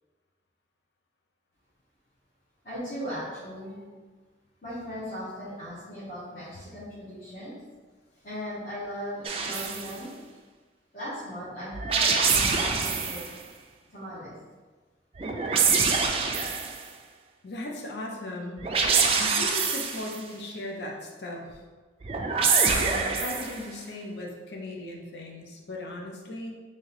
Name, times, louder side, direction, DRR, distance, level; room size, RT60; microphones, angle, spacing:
voice 1, 2.6-3.8 4.6-7.5 8.2-10.1 10.9-13.2 13.9-14.3, equal, 50° left, -14 dB, 1.3 m, -38 dB
sound 1, 9.2-9.9 11.7-13.3 15.1-16.8 18.6-20.2 22.0-23.6, right 5 dB, 35° right, 0.3 m, -25 dB
voice 2, 17.4-18.6 19.2-21.6 22.7-26.5, left 1 dB, 70° left, 0 dB, 0.6 m, -37 dB
3.7 x 2.7 x 3.2 m, 1.4 s
head